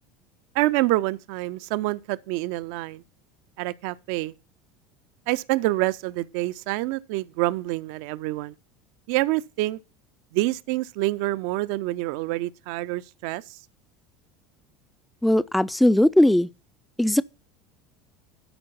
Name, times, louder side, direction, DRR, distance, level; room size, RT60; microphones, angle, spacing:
voice 1, 0.5-3.0 3.6-4.3 5.3-8.5 9.1-9.8 10.3-13.4, right 18 dB, 55° right, 0.4 m, -27 dB
voice 2, 15.2-16.5 17.0-17.2, left 1 dB, 5° left, 0.4 m, -19 dB
12.0 x 5.1 x 5.6 m
figure-of-eight pair, 70°, 0 cm